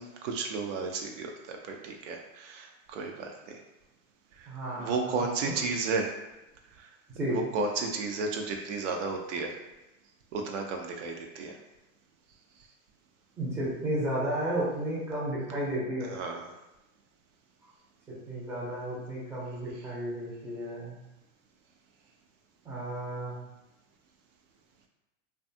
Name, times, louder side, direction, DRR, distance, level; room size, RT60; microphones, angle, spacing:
voice 1, 0.0-3.6 4.3-6.1 6.7-6.9 7.3-9.5 10.3-11.6 16.1-16.5 19.8-19.9, right 4 dB, 60° right, 2 dB, 0.5 m, -33 dB
voice 2, 4.5-5.1 7.1-7.4 13.4-16.1 18.3-21.0 22.6-23.4, right 1 dB, 5° right, -6 dB, 0.5 m, -33 dB
2.5 x 2.3 x 2.6 m, 0.97 s
hypercardioid pair, 120°, 41 cm